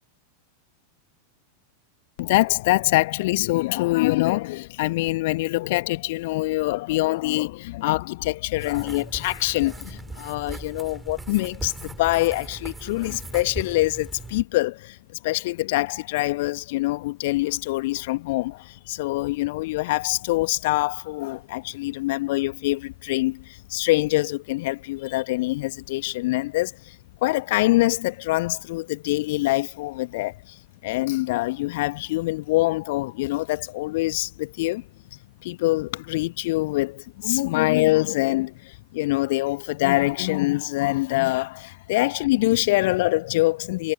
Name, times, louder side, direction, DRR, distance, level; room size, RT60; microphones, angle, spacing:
voice 1, 2.2-15.0 15.2-27.0 27.2-43.9, left 19 dB, 50° left, 1.7 m, -24 dB
sound 1, 8.6-14.4, right 3 dB, 10° right, 7.4 m, -38 dB
figure-of-eight pair, 90°, 0 cm